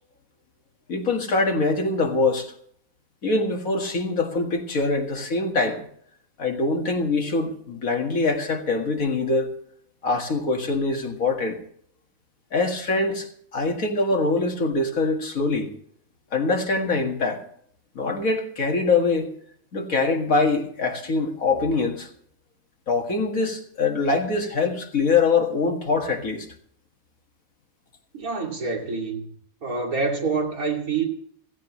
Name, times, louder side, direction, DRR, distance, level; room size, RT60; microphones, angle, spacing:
voice 1, 0.9-2.5 3.2-5.8 6.4-9.5 10.0-11.6 12.5-15.7 16.3-17.4 18.0-19.3 19.7-22.1 22.9-26.5, left 3 dB, 75° left, 2.3 m, -23 dB
voice 2, 28.1-29.3 29.6-31.1, right 4 dB, 85° right, 3.0 m, -26 dB
16.0 x 15.5 x 3.2 m
omnidirectional pair, 1.5 m